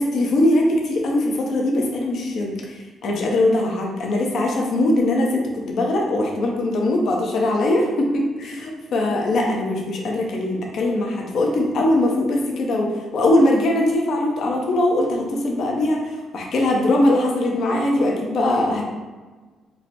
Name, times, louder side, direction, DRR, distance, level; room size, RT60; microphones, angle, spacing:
voice 1, 0.0-2.5 3.0-16.0 16.3-18.8, left 1 dB, 70° left, -1 dB, 0.8 m, -21 dB
4.5 x 2.2 x 4.2 m, 1.3 s
cardioid pair, 90°, 0 cm